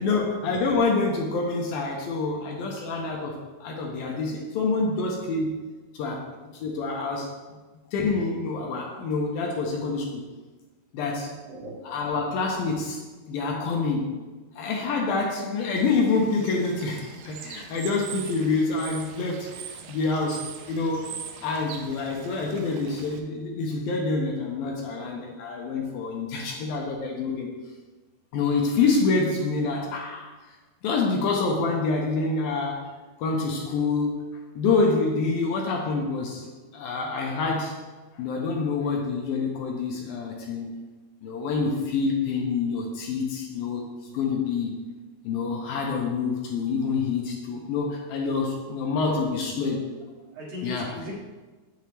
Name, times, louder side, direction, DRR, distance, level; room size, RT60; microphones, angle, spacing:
voice 1, 0.0-5.6 5.9-6.3 6.5-7.3 7.9-10.2 10.9-11.3 11.9-14.1 14.6-19.5 19.9-21.0 21.4-27.5 28.3-30.3 30.8-32.8 33.2-34.2 34.6-36.5 36.7-37.7 38.2-40.8 41.2-44.8 45.2-49.9 50.6-50.9, left 4 dB, 75° left, 0 dB, 2.5 m, -27 dB
voice 2, 11.5-11.8 49.0-49.2 50.3-51.2, left 1 dB, 60° right, -6 dB, 2.8 m, -36 dB
Bird / Water, 15.8-23.2, right 8 dB, 80° right, 2.5 m, -42 dB
8.9 x 6.8 x 3.1 m, 1.3 s
omnidirectional pair, 4.6 m